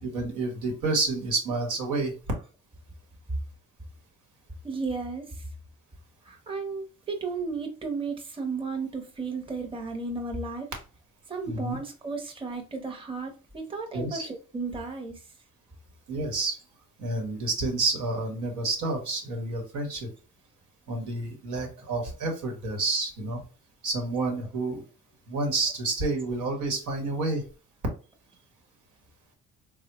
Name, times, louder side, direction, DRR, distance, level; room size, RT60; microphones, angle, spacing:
voice 1, 0.0-2.2 11.5-11.8 13.9-14.3 16.1-16.6 17.0-20.1 20.9-23.4 23.8-24.8 25.3-27.4, right 3 dB, 80° right, 1.1 m, -29 dB
voice 2, 4.6-5.5 6.2-10.7 11.3-15.3, right 4 dB, 15° right, 0.7 m, -34 dB
3.4 x 2.1 x 2.9 m
cardioid pair, 90°, 30 cm